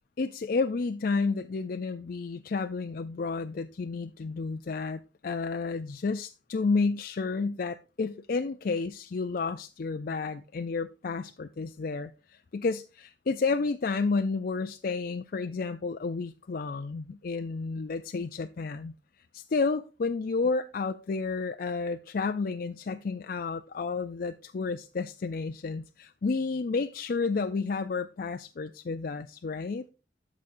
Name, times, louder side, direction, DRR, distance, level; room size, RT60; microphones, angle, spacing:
voice 1, 0.2-18.9 19.3-29.8, left 4 dB, 55° left, 0.4 m, -31 dB
13.0 x 6.2 x 2.6 m
head